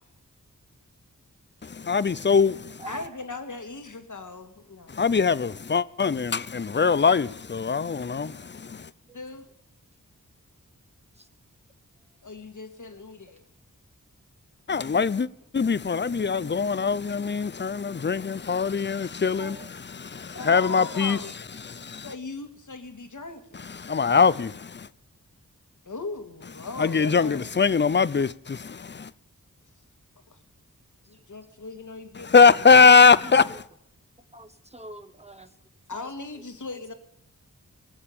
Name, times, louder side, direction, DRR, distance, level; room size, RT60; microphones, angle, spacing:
voice 1, 1.6-2.8 4.9-8.9 14.7-15.3 15.5-21.2 21.6-22.1 23.8-24.9 26.8-29.1 32.2-33.6, left 5 dB, 35° left, 0.6 m, -21 dB
voice 2, 2.9-5.0 9.1-9.5 12.2-13.4 20.3-21.4 22.0-23.8 25.8-27.7 30.3-30.4 31.1-33.0 35.9-36.9, left 3 dB, 65° left, 2.0 m, -39 dB
voice 3, 19.4-19.7 34.3-35.5 36.0-36.1, right 2 dB, 20° right, 1.1 m, -42 dB
20.5 x 7.3 x 8.7 m
cardioid pair, 50°, 33 cm